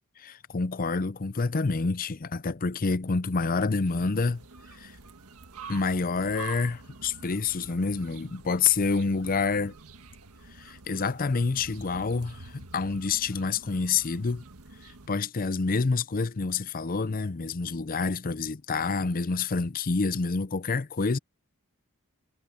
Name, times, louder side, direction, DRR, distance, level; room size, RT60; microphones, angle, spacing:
voice 1, 0.2-4.4 4.7-4.9 5.7-9.7 10.5-14.4 15.1-21.2, left 4 dB, 40° left, 0.6 m, -28 dB
sound 1, 3.8-15.1, right 4 dB, 80° right, 1.6 m, -47 dB
head